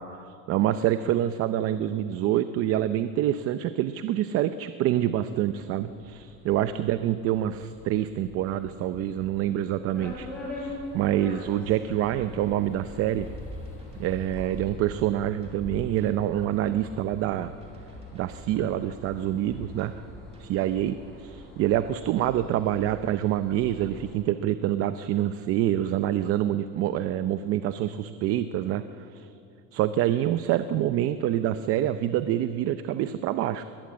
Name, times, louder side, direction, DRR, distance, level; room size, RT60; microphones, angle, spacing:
voice 1, 0.0-13.3 14.0-17.5 18.1-20.1 20.4-29.3 29.7-33.6, right 12 dB, 45° right, 11 dB, 0.6 m, -26 dB
sound 1, 5.5-20.0, left 2 dB, 25° left, 3.9 m, -53 dB
sound 2, 9.9-24.2, left 1 dB, 5° left, 6.7 m, -43 dB
sound 3, 13.2-20.4, equal, 20° right, 2.4 m, -50 dB
21.0 x 20.5 x 8.7 m, 2.6 s
cardioid pair, 175°, 33 cm